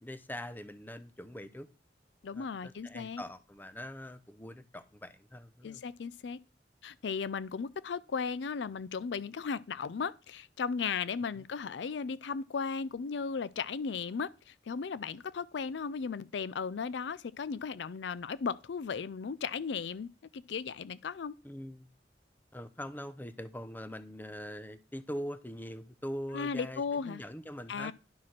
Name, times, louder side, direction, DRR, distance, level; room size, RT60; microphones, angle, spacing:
voice 1, 0.0-1.7 2.3-5.8 11.4-11.5 21.4-21.9 22.5-27.9, equal, 10° left, 0.8 m, -43 dB
voice 2, 2.2-3.2 5.6-6.4 6.8-21.3 26.3-27.2 27.7-27.9, left 5 dB, 80° left, 0.4 m, -36 dB
11.0 x 5.0 x 5.9 m
head